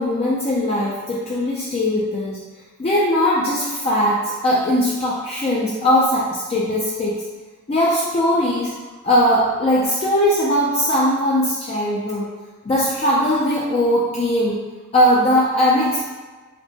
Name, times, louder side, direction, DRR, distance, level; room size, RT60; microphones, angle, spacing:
voice 1, 0.0-2.4 2.8-7.2 7.7-8.7 9.0-12.3 12.7-14.6 14.9-16.1, equal, 30° left, -6 dB, 0.3 m, -19 dB
3.3 x 2.0 x 3.9 m, 1.3 s
head